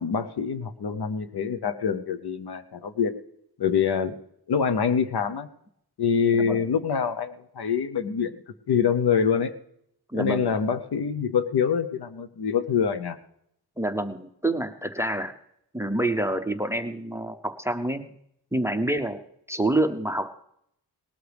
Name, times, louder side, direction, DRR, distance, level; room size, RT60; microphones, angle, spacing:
voice 1, 0.0-3.1 3.6-4.2 4.5-5.5 6.0-8.4 8.7-9.5 10.1-13.2, left 6 dB, 70° left, 11 dB, 0.9 m, -25 dB
voice 2, 10.1-10.5 13.8-15.3 15.7-18.2 18.5-20.4, right 1 dB, 5° right, 10 dB, 0.6 m, -27 dB
19.0 x 13.0 x 3.4 m, 0.72 s
wide cardioid pair, 160°, 40 cm